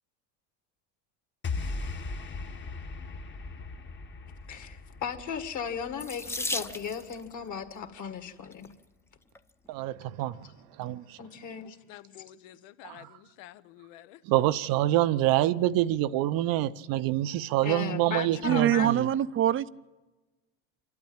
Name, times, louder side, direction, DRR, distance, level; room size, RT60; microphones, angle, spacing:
sound 1, 1.4-7.9, left 3 dB, 30° left, 1.3 m, -39 dB
voice 1, 4.5-8.7 10.2-10.3 11.2-11.8 17.6-18.9, left 7 dB, 45° left, 2.1 m, -36 dB
Water tap faucet / Sink (filling or washing), 6.0-7.2 8.3-8.7 9.3-9.4 9.8-9.9, left 2 dB, 5° left, 0.7 m, -35 dB
voice 2, 9.7-10.4 10.8-11.2 12.8-12.9 14.2-19.1, right 14 dB, 60° right, 0.8 m, -26 dB
voice 3, 11.6-14.2, left 13 dB, 75° left, 1.0 m, -50 dB
voice 4, 18.4-19.7, right 11 dB, 30° right, 0.6 m, -24 dB
27.0 x 12.0 x 8.8 m
supercardioid pair, 95°, 40 cm